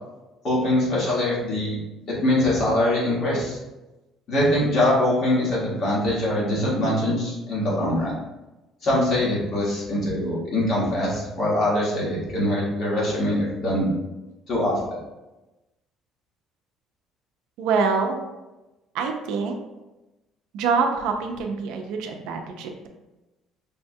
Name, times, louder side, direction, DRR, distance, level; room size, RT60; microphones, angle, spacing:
voice 1, 0.4-1.8 2.1-3.6 4.3-8.1 8.8-13.9 14.5-15.0, left 1 dB, 40° left, -6 dB, 1.3 m, -23 dB
voice 2, 17.6-18.2 18.9-19.6 20.5-22.9, right 5 dB, 85° right, 3 dB, 0.4 m, -25 dB
5.4 x 2.2 x 2.6 m, 1.0 s
cardioid pair, 175°, 0 cm